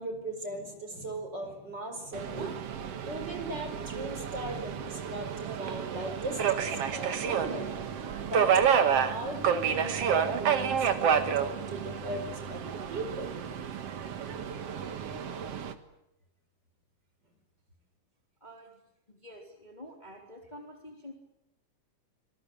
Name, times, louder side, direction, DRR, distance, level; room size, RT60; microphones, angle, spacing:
voice 1, 0.0-2.7 3.0-7.7 8.2-12.6 12.9-13.3, right 1 dB, 30° right, 6 dB, 5.3 m, -38 dB
Subway metro underground, 2.1-15.7, right 7 dB, 55° right, 2.2 m, -30 dB
voice 2, 18.4-18.8 19.1-21.1, equal, 15° left, 1 dB, 3.3 m, -48 dB
26.5 x 22.0 x 8.8 m, 0.84 s
omnidirectional pair, 3.8 m